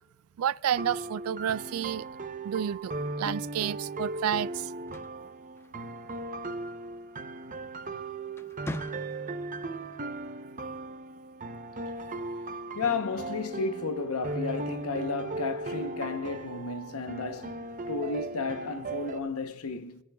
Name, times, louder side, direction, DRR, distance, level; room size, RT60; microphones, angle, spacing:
voice 1, 0.4-2.1 2.4-4.7, right 9 dB, 75° right, 0.3 m, -30 dB
sound 1, 0.7-19.2, right 3 dB, 35° right, 0.7 m, -37 dB
sound 2, 4.6-6.2 7.6-7.9 8.3-9.5, left 1 dB, 10° left, 0.3 m, -42 dB
voice 2, 12.8-20.0, left 4 dB, 80° left, 0.9 m, -33 dB
27.0 x 10.0 x 2.3 m
head